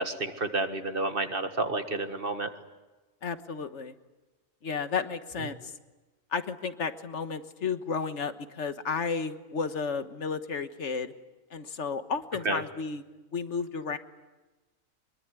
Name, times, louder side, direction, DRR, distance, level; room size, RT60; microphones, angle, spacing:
voice 1, 0.0-2.5 12.5-12.6, right 2 dB, 45° right, 7 dB, 1.9 m, -30 dB
voice 2, 3.2-3.9 4.6-5.7 6.3-11.1 11.5-13.0 13.3-14.0, left 5 dB, 60° left, 9 dB, 1.6 m, -32 dB
24.5 x 22.5 x 9.5 m, 1.1 s
omnidirectional pair, 1.4 m